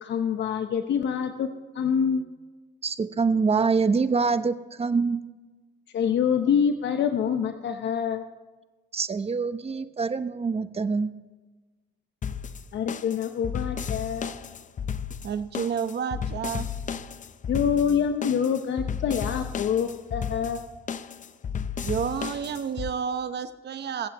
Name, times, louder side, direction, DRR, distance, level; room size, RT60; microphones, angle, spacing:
voice 1, 0.0-1.5 1.7-2.2 5.9-8.2 12.7-14.3 17.5-20.6, left 7 dB, 65° left, 7 dB, 0.9 m, -26 dB
voice 2, 2.8-5.2 8.9-11.1, right 4 dB, 30° right, 11 dB, 0.9 m, -25 dB
sound 1, 12.2-22.9, left 7 dB, 40° left, 0.6 m, -33 dB
voice 3, 15.2-16.7 21.8-24.1, right 7 dB, 60° right, 10 dB, 1.0 m, -30 dB
23.0 x 8.2 x 3.0 m, 1.3 s
cardioid pair, 90°, 20 cm